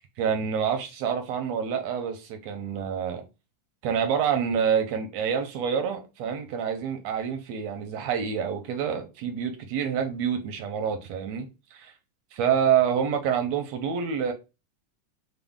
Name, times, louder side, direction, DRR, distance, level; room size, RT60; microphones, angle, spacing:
voice 1, 0.2-3.2 3.8-11.4 12.3-14.3, right 7 dB, 80° right, 1.6 m, -27 dB
4.9 x 2.0 x 3.5 m
omnidirectional pair, 3.6 m